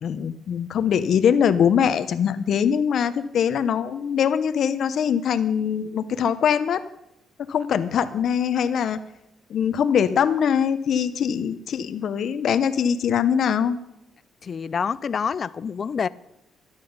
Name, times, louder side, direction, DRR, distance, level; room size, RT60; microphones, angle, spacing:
voice 1, 0.0-6.8 7.5-9.0 9.5-13.8, left 8 dB, 65° left, 0.8 m, -22 dB
voice 2, 14.4-16.1, left 6 dB, 45° left, 0.5 m, -27 dB
13.5 x 10.5 x 5.4 m
cardioid pair, 90°, 0 cm